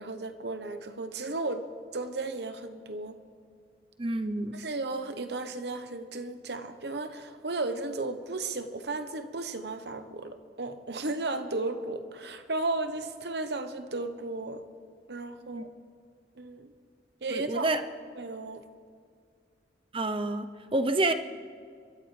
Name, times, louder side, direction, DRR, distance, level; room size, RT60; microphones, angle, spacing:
voice 1, 0.0-1.7 1.9-3.2 4.5-14.6 15.1-15.7 16.4-16.7 17.2-17.7 18.2-18.6, right 2 dB, 65° right, 9 dB, 1.0 m, -34 dB
voice 2, 4.0-4.6 15.4-15.6 17.3-17.8 19.9-21.1, right 2 dB, 30° right, 9 dB, 0.7 m, -28 dB
28.0 x 13.0 x 3.3 m, 2.2 s
head